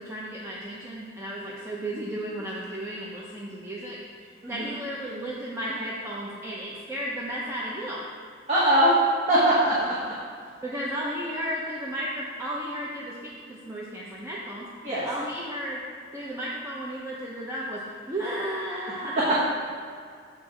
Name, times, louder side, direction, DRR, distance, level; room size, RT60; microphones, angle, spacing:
voice 1, 0.0-8.1 10.6-14.7 15.0-15.8 16.1-19.3, right 1 dB, 15° right, -5 dB, 0.7 m, -34 dB
voice 2, 4.4-4.8 8.5-8.9 9.3-10.1 14.8-15.0, right 1 dB, 35° right, -8 dB, 1.2 m, -22 dB
7.3 x 4.5 x 4.9 m, 2.2 s
head